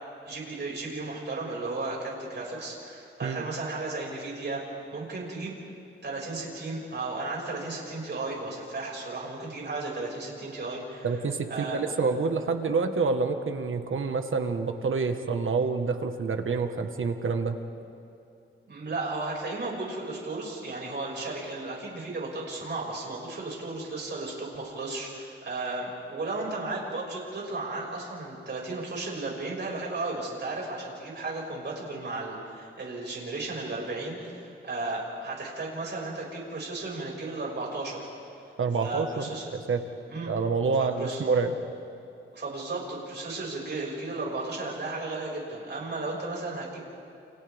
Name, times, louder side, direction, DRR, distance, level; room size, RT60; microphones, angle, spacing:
voice 1, 0.2-4.6 4.9-5.6 6.0-11.1 11.5-11.8 18.7-38.1 38.8-39.5 40.1-40.3 40.8-41.2 42.3-46.8, right 2 dB, 55° right, -3 dB, 6.1 m, -34 dB
voice 2, 11.0-17.6 38.6-39.8 40.3-41.5, right 4 dB, 70° right, 6 dB, 1.6 m, -27 dB
30.0 x 29.0 x 3.6 m, 2.8 s
wide cardioid pair, 105°, 21 cm